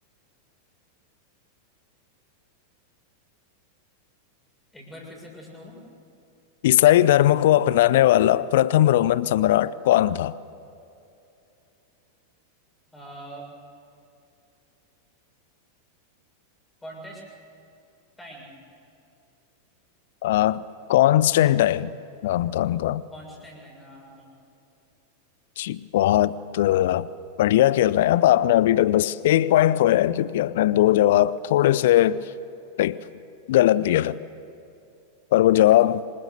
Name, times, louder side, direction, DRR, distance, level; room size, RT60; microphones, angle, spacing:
voice 1, 4.7-5.8 12.9-13.5 16.8-17.2 18.2-18.5 23.1-24.4, equal, 10° left, 6.8 m, -43 dB
voice 2, 6.6-10.4 20.2-21.9 22.2-23.0 25.6-27.1 27.4-32.2 32.8-33.0 33.5-34.2 35.3-36.1, left 13 dB, 55° left, 0.5 m, -19 dB
26.5 x 20.0 x 6.7 m
figure-of-eight pair, 90°, 0 cm